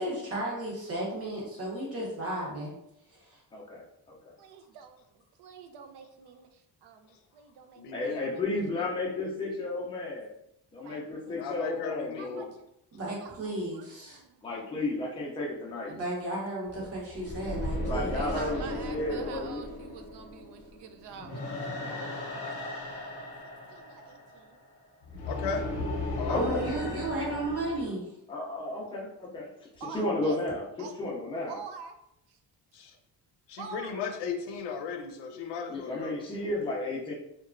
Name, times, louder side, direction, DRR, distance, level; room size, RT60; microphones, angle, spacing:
voice 1, 0.0-2.7 3.2-3.4 12.9-14.2 15.9-18.1 26.3-28.0, right 1 dB, 35° right, -4 dB, 0.9 m, -34 dB
voice 2, 3.5-4.2 7.9-10.2 10.7-12.5 14.4-15.9 17.9-18.6 18.9-19.6 26.3-26.7 28.3-29.5 29.9-31.6 35.7-37.1, left 2 dB, 15° left, -2 dB, 0.4 m, -33 dB
voice 3, 4.4-8.6 10.8-12.5 13.2-14.7 15.9-16.1 16.5-16.6 18.1-22.2 22.4-22.6 22.9-23.1 23.4-24.6 29.8-30.4 30.8-30.9 31.5-32.0 32.3-32.4 33.6-34.0, right 6 dB, 75° right, 6 dB, 0.5 m, -47 dB
voice 4, 7.8-8.3 11.2-12.5 25.3-25.8 26.2-26.6 32.7-33.0 33.5-36.2, left 6 dB, 85° left, 5 dB, 0.6 m, -36 dB
sound 1, 16.7-27.9, left 1 dB, 40° left, 0.8 m, -36 dB
2.9 x 2.2 x 2.4 m, 0.79 s
cardioid pair, 150°, 41 cm